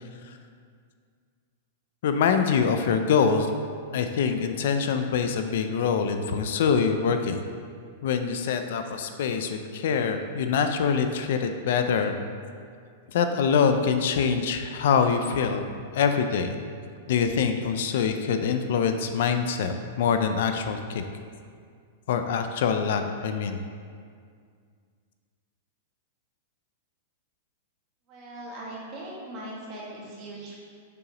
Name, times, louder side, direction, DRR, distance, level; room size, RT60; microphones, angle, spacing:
voice 1, 2.0-3.6 3.9-7.4 8.0-12.2 13.1-15.7 15.9-16.6 17.1-21.0 22.1-23.6, left 6 dB, 65° left, 7 dB, 0.4 m, -24 dB
voice 2, 28.1-30.6, right 1 dB, 30° right, -5 dB, 1.5 m, -40 dB
6.7 x 5.0 x 2.9 m, 2.1 s
supercardioid pair, 155°, 0 cm